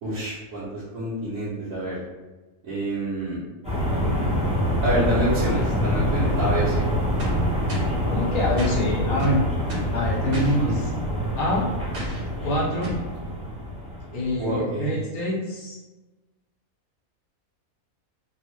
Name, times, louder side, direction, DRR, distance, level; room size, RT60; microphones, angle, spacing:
voice 1, 0.0-2.0 2.6-3.4 4.8-6.8 10.3-10.7 14.4-14.9, right 1 dB, 75° right, -11 dB, 1.3 m, -27 dB
sound 1, 3.6-14.5, equal, 5° right, 0.7 m, -25 dB
sound 2, 7.2-8.0 8.6-8.8 9.2-10.0 10.3-10.6 11.9-12.3 12.8-13.1, left 1 dB, 45° right, 1.0 m, -33 dB
voice 2, 8.1-9.4 9.9-10.9 11.4-11.7 12.4-12.9 14.1-15.8, left 1 dB, 80° left, -6 dB, 1.5 m, -25 dB
3.5 x 2.4 x 3.0 m, 1.2 s
omnidirectional pair, 1.5 m